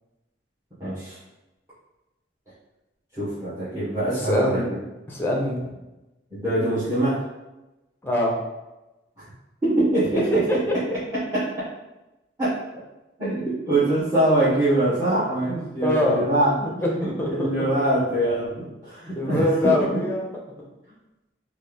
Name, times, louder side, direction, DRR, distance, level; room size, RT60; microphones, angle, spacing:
voice 1, 0.8-1.2 3.1-4.6 6.3-7.2 9.6-10.6 12.4-12.5 13.2-16.5 17.3-20.0, right 1 dB, 20° right, -13 dB, 1.1 m, -23 dB
voice 2, 4.2-4.6 5.1-5.6 8.0-8.3 15.8-16.3 16.6-17.5 19.2-20.2, left 1 dB, 10° left, -2 dB, 0.6 m, -23 dB
3.2 x 2.4 x 3.4 m, 1.0 s
head